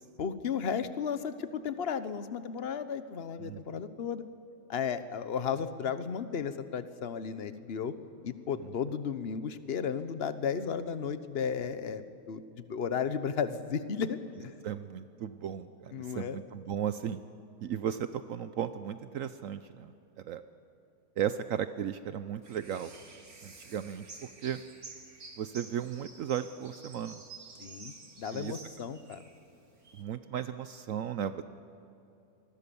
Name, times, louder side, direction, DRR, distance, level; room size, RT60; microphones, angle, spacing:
voice 1, 0.2-4.2 4.7-7.9 8.2-14.5 15.9-16.4 27.6-29.2, left 7 dB, 45° left, 12 dB, 1.2 m, -34 dB
voice 2, 14.6-17.2 17.6-20.4 21.2-22.9 23.4-24.6 25.4-27.2 28.3-28.6 30.0-31.4, right 9 dB, 70° right, 11 dB, 1.1 m, -35 dB
sound 1, 22.4-30.0, right 3 dB, 85° right, 3.0 m, -50 dB
26.0 x 20.5 x 7.0 m, 2.8 s
omnidirectional pair, 1.5 m